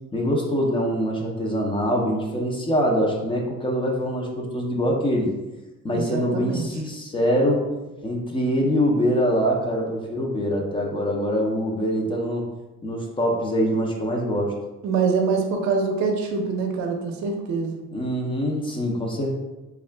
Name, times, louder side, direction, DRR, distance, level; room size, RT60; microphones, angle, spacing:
voice 1, 0.1-5.3 5.8-7.7 8.0-12.4 12.8-14.5 17.9-19.3, equal, 15° left, -1 dB, 0.5 m, -24 dB
voice 2, 5.9-6.7 14.8-17.8, right 5 dB, 65° right, 3 dB, 0.6 m, -24 dB
3.5 x 2.4 x 3.3 m, 1.1 s
cardioid pair, 140°, 31 cm